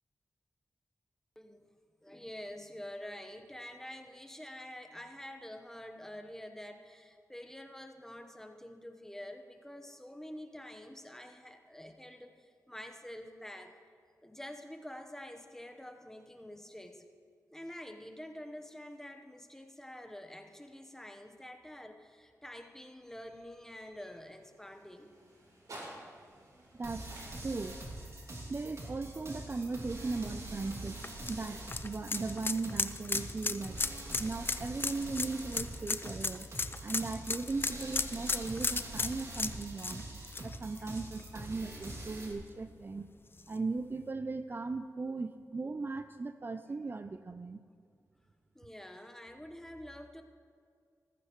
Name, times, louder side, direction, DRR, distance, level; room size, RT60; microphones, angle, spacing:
voice 1, 1.4-1.7 2.0-13.8 14.2-17.0 17.5-25.1 40.8-40.9 48.5-50.2, left 1 dB, 5° left, 5 dB, 1.0 m, -47 dB
sound 1, 22.8-31.0, right 1 dB, 70° right, 3.3 m, -55 dB
voice 2, 26.8-27.2 27.4-27.8 28.5-33.9 34.2-36.5 36.8-40.1 40.4-43.1 43.5-47.6, right 3 dB, 35° right, 10 dB, 0.4 m, -38 dB
sound 2, 26.8-42.3, right 1 dB, 50° right, 2.4 m, -44 dB
sound 3, 30.7-41.4 41.8-41.9 43.4-43.5, left 3 dB, 35° left, 0.5 m, -35 dB
14.5 x 14.5 x 3.1 m, 2.1 s
cardioid pair, 65°, 6 cm